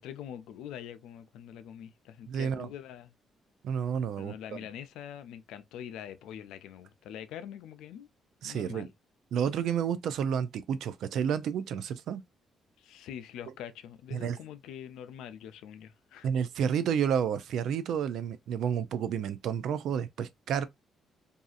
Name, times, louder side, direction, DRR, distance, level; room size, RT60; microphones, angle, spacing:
voice 1, 0.0-3.1 4.2-8.1 8.4-8.9 12.8-16.3, left 9 dB, 90° left, 0.4 m, -44 dB
voice 2, 2.3-2.7 3.6-4.6 8.4-8.9 9.3-12.2 14.1-14.4 16.2-20.7, right 8 dB, 75° right, 0.4 m, -30 dB
2.7 x 2.4 x 2.4 m
cardioid pair, 90°, 0 cm